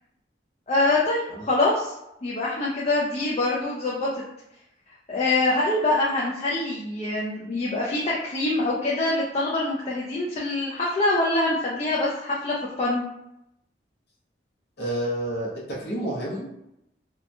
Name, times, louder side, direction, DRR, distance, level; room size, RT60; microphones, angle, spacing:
voice 1, 0.7-1.9 2.2-4.2 5.1-13.0, left 2 dB, 35° left, -5 dB, 0.4 m, -24 dB
voice 2, 14.8-16.5, right 1 dB, 60° left, -6 dB, 0.7 m, -30 dB
2.8 x 2.1 x 2.6 m, 0.84 s
head